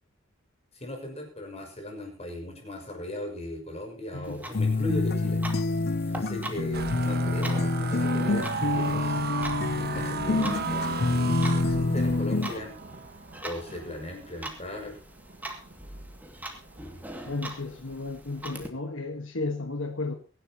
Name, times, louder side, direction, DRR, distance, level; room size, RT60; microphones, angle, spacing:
voice 1, 0.7-5.4 6.0-9.2 9.8-12.7 13.4-15.0, left 1 dB, 30° left, 6.0 m, -38 dB
Clock, 4.2-18.7, right 1 dB, 10° right, 2.4 m, -43 dB
sound 1, 4.5-12.6, left 2 dB, 50° left, 0.6 m, -27 dB
sound 2, 6.7-16.1 16.6-16.9 17.2-17.7, right 4 dB, 50° right, 1.4 m, -35 dB
voice 2, 17.2-20.2, left 3 dB, 75° left, 1.5 m, -33 dB
24.0 x 11.5 x 3.0 m
head